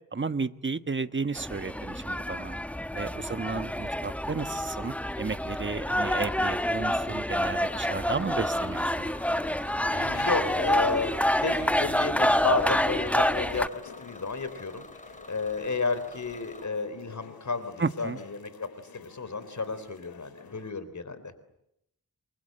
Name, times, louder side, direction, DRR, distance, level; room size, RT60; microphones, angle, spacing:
voice 1, 0.1-2.6 2.9-9.1 17.8-18.2, right 4 dB, 35° right, 11 dB, 1.4 m, -33 dB
sound 1, 1.4-13.7, equal, 5° left, 1.0 m, -28 dB
voice 2, 3.3-3.7 9.9-14.9 15.3-18.7 18.9-21.2, left 3 dB, 55° left, 13 dB, 4.1 m, -32 dB
Bus / Engine, 7.4-16.7, left 2 dB, 20° left, 4.3 m, -48 dB
sound 2, 8.7-20.7, left 6 dB, 85° left, 3.1 m, -50 dB
29.5 x 23.5 x 8.0 m, 0.80 s
wide cardioid pair, 70°, 35 cm